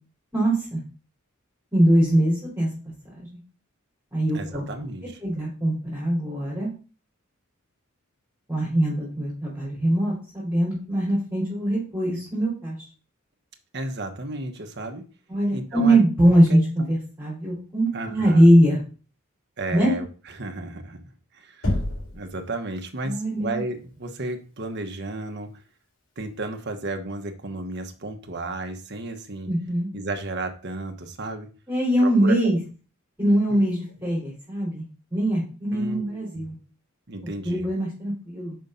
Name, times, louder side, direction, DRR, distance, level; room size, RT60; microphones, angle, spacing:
voice 1, 0.3-0.8 1.7-2.7 3.1-3.3 4.1-4.6 5.2-6.7 8.5-12.8 15.3-16.6 16.9-18.8 19.7-19.9 23.0-23.6 29.5-29.9 31.7-32.6 33.2-34.8 35.1-36.5 37.2-38.6, right 1 dB, 10° right, -7 dB, 3.3 m, -22 dB
voice 2, 4.3-5.2 13.7-15.1 15.5-16.0 16.5-16.9 17.9-18.5 19.6-21.0 21.3-21.8 22.1-25.6 26.2-29.5 29.9-31.5 32.0-32.6 35.7-36.4 37.1-37.7, right 2 dB, 55° right, 5 dB, 1.2 m, -33 dB
Knock, 21.6-22.3, left 1 dB, 80° left, 3.8 m, -26 dB
5.6 x 5.3 x 5.5 m, 0.36 s
head